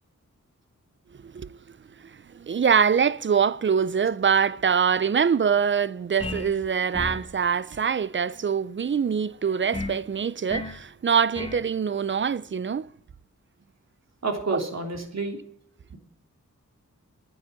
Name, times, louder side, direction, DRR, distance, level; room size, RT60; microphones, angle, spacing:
voice 1, 1.2-1.6 2.3-12.9 14.5-14.6, right 7 dB, 40° right, 0.5 m, -24 dB
sound 1, 6.2-6.6 6.9-7.3 9.7-10.0 10.5-10.8 11.3-11.7, left 2 dB, 20° left, 1.5 m, -33 dB
voice 2, 14.2-15.4, right 3 dB, 55° right, 3.1 m, -29 dB
9.7 x 8.7 x 10.0 m
wide cardioid pair, 75°, 31 cm